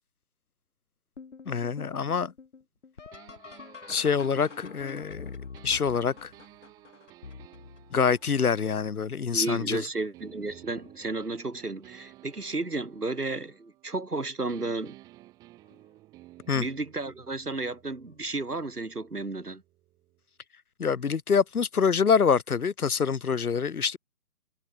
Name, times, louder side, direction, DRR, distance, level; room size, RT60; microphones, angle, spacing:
sound 1, 1.2-8.8 9.5-10.0 10.5-11.1 12.4-12.5 13.2-13.5 15.7-15.8 18.1-18.2, left 5 dB, 50° left, 5.9 m, -46 dB
voice 1, 1.5-2.3 3.9-5.3 5.6-6.3 7.9-9.8 16.5-16.6 20.8-24.0, left 6 dB, 70° left, 0.9 m, -25 dB
sound 2, 3.1-9.7 10.1-14.2 14.5-20.2, right 17 dB, 10° right, 2.0 m, -55 dB
voice 2, 9.3-15.0 16.5-19.6, right 3 dB, 85° right, 3.5 m, -33 dB
figure-of-eight pair, 155°, 45 cm